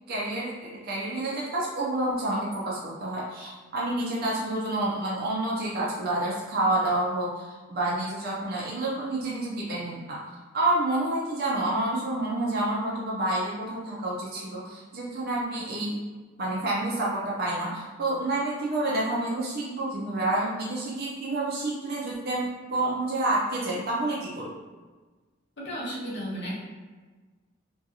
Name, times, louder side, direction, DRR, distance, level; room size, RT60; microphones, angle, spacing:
voice 1, 0.1-0.5 0.8-10.2 10.5-16.0 16.4-24.5, right 2 dB, 50° right, -5 dB, 0.5 m, -29 dB
voice 2, 25.6-26.6, equal, 60° left, -5 dB, 0.8 m, -33 dB
2.6 x 2.3 x 2.7 m, 1.3 s
head